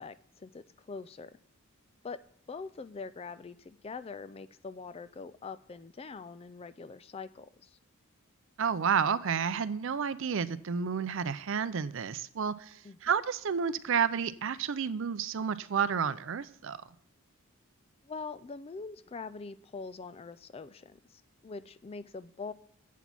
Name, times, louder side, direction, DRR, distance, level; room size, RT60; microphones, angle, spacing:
voice 1, 0.0-1.3 2.0-2.2 2.5-7.8 12.8-13.1 18.0-22.5, left 4 dB, 25° left, 15 dB, 0.3 m, -43 dB
voice 2, 8.6-16.8, right 6 dB, 60° right, 15 dB, 0.5 m, -31 dB
8.2 x 6.1 x 7.3 m, 0.64 s
head